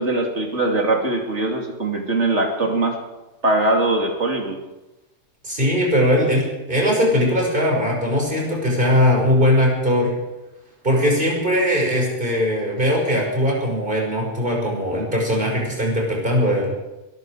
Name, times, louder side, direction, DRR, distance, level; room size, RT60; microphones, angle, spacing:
voice 1, 0.0-3.0 3.4-4.6, right 2 dB, 85° right, 1 dB, 3.1 m, -21 dB
voice 2, 5.4-10.1 10.8-16.7, equal, 50° right, -2 dB, 6.2 m, -20 dB
21.5 x 13.5 x 5.0 m, 1.0 s
omnidirectional pair, 1.2 m